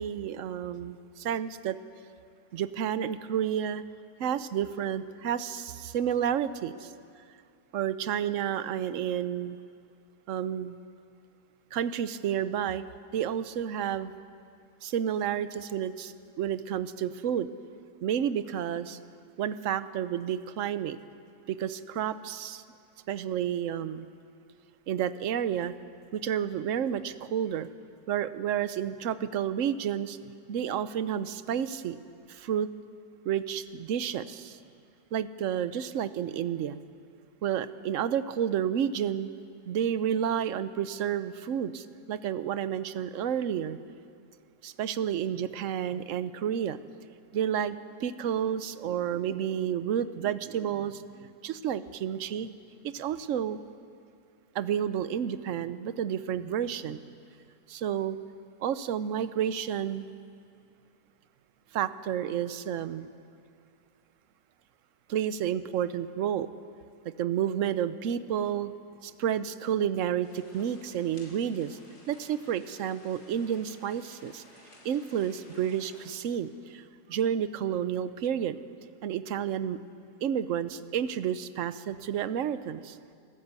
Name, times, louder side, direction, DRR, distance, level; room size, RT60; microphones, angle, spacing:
voice 1, 0.0-1.8 2.5-3.8 4.2-6.9 7.7-9.6 10.3-10.8 11.7-12.8 13.1-14.1 14.8-17.5 18.0-19.0 19.4-21.0 21.5-22.6 23.1-24.1 24.9-25.7 26.1-27.7 28.1-30.2 30.5-32.0 32.3-32.7 33.2-34.6 35.1-36.8 37.4-39.3 39.7-43.8 44.6-52.5 52.8-53.6 54.5-57.0 57.7-58.2 58.6-60.1 61.7-63.1 65.1-66.5 67.2-68.7 69.0-71.8 72.1-74.4 74.8-76.8 77.1-78.6 79.0-79.8 80.2-83.0, right 9 dB, 60° right, 13 dB, 1.0 m, -30 dB
sound 1, 70.2-76.1, left 2 dB, 75° left, 4.1 m, -55 dB
26.5 x 13.5 x 8.2 m, 2.3 s
omnidirectional pair, 1.7 m